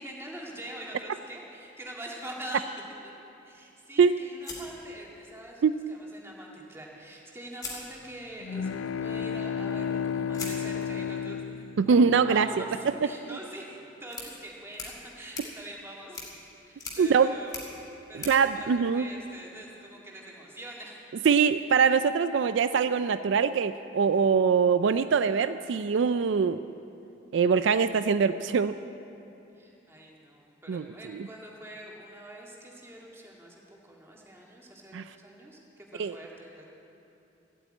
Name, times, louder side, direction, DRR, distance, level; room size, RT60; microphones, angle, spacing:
voice 1, 0.0-2.8 3.4-5.6 5.9-16.2 16.6-21.0 29.5-36.7, right 1 dB, 15° right, -2 dB, 1.9 m, -44 dB
sound 1, 4.4-5.6 6.9-7.0 7.5-8.5 10.3-19.5, left 3 dB, 20° left, 2.4 m, -44 dB
sound 2, 8.4-12.4, left 7 dB, 85° left, 0.4 m, -32 dB
voice 2, 11.8-12.5 17.0-17.3 18.1-19.1 21.3-26.6 27.3-28.7 30.7-30.9 31.1-31.3 34.9-35.0 36.0-36.2, right 6 dB, 65° right, 12 dB, 0.3 m, -23 dB
14.5 x 8.6 x 9.0 m, 2.9 s
head